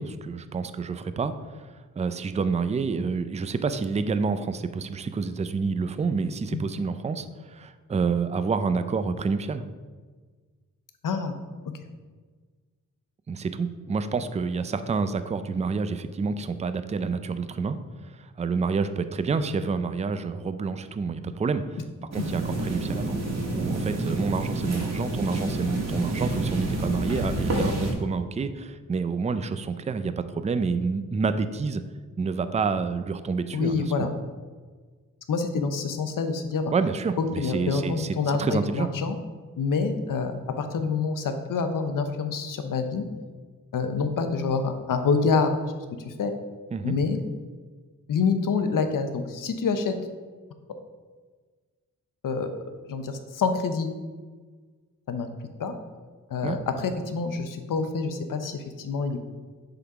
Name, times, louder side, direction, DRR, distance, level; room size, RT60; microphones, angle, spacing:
voice 1, 0.0-1.3 1.6-9.6 13.3-17.8 18.1-21.8 22.1-23.2 23.5-31.8 32.2-34.1 36.7-38.9 46.7-47.0 56.4-56.6, right 4 dB, 20° right, 11 dB, 0.4 m, -28 dB
voice 2, 11.0-11.4 33.5-34.1 35.3-36.7 37.4-39.2 39.6-43.0 43.7-45.5 46.0-46.3 46.8-47.2 48.1-49.9 52.2-52.5 52.9-53.9 55.1-55.3 55.6-55.7 56.3-59.2, left 5 dB, 75° left, 7 dB, 0.7 m, -27 dB
sound 1, 22.1-27.9, right 1 dB, 50° right, 1.6 m, -28 dB
6.8 x 3.9 x 4.7 m, 1.4 s
cardioid pair, 80°, 33 cm